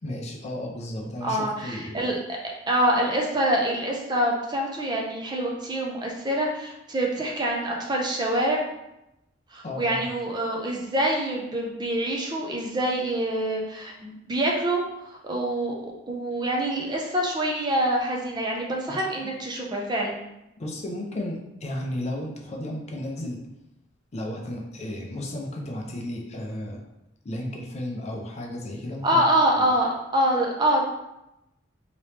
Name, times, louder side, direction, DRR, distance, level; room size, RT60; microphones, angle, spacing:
voice 1, 0.0-2.0 9.6-10.1 18.9-19.0 20.6-23.4 24.1-26.8 27.2-29.2 29.6-29.7, left 1 dB, 35° left, 0 dB, 0.5 m, -33 dB
voice 2, 1.2-2.2 2.7-8.6 9.5-20.2 29.0-30.8, right 1 dB, 20° right, -1 dB, 0.5 m, -25 dB
3.0 x 2.9 x 3.2 m, 0.89 s
head